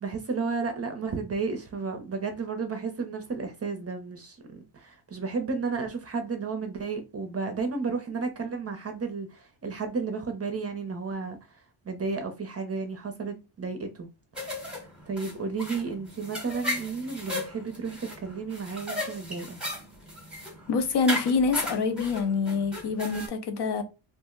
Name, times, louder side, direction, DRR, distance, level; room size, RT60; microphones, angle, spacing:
voice 1, 0.0-11.4 11.9-14.1 15.1-19.6, right 4 dB, 30° right, 0.5 m, -32 dB
sound 1, 14.3-23.3, left 1 dB, ahead, 0.8 m, -36 dB
voice 2, 20.7-23.8, left 4 dB, 55° left, 0.6 m, -26 dB
2.5 x 2.0 x 3.5 m
cardioid pair, 120°, 49 cm